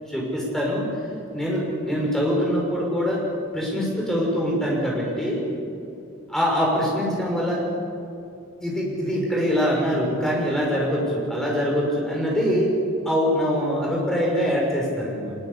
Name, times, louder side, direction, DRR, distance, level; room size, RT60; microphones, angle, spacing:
voice 1, 0.1-0.8 1.3-3.2 3.5-5.4 6.3-7.6 8.6-12.7 13.0-15.3, equal, ahead, -3 dB, 6.2 m, -23 dB
23.0 x 21.5 x 8.5 m, 2.7 s
head